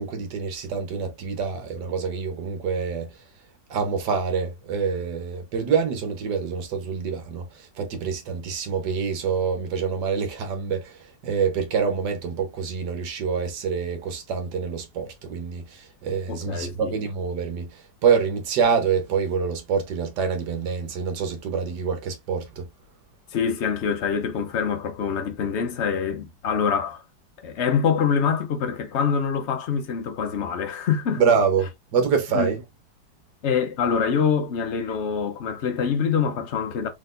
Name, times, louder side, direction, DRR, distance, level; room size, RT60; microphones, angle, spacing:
voice 1, 0.0-3.1 3.7-7.5 7.8-17.7 18.0-22.7 31.2-32.6, right 6 dB, 70° right, 1.6 m, -26 dB
voice 2, 16.3-16.9 23.3-27.0 27.4-31.2 32.3-32.5 33.4-36.9, left 6 dB, 55° left, 0.8 m, -25 dB
4.0 x 3.7 x 2.5 m
omnidirectional pair, 2.0 m